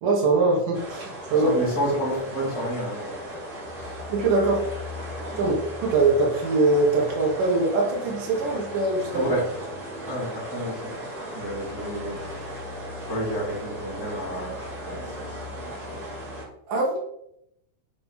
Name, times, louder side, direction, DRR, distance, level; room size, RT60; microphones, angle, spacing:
voice 1, 0.0-1.6 4.1-4.7 5.4-9.2 16.7-17.0, right 3 dB, 85° right, -2 dB, 3.1 m, -22 dB
sound 1, 0.7-16.5, equal, 50° right, 4.1 m, -36 dB
voice 2, 1.4-3.5 3.8-4.0 5.3-5.5 9.1-9.5 10.1-16.0, equal, 10° right, -5 dB, 2.2 m, -31 dB
7.7 x 4.6 x 5.8 m, 0.77 s
omnidirectional pair, 3.7 m